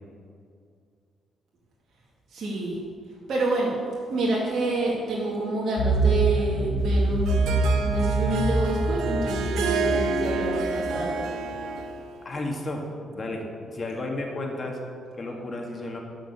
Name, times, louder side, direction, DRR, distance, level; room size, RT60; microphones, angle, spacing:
voice 1, 2.3-2.8 3.1-3.8 4.1-11.3, right 2 dB, 60° right, -5 dB, 2.1 m, -28 dB
sound 1, 5.8-11.5, right 2 dB, 85° left, 2.0 m, -25 dB
Harp, 6.9-12.2, right 4 dB, 80° right, 0.8 m, -29 dB
voice 2, 12.2-14.8 15.2-16.0, left 2 dB, 35° left, 1 dB, 1.9 m, -33 dB
12.0 x 5.3 x 6.9 m, 2.3 s
cardioid pair, 90°, 0 cm